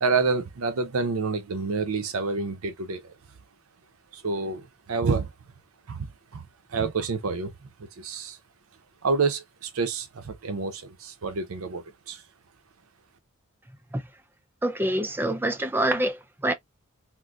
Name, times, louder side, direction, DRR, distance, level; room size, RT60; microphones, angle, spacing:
voice 1, 0.0-3.1 4.1-5.3 5.9-6.1 6.3-8.4 9.0-12.2, right 4 dB, 70° right, 0.6 m, -28 dB
voice 2, 14.6-16.5, right 1 dB, 10° right, 0.3 m, -26 dB
3.7 x 2.5 x 2.4 m
head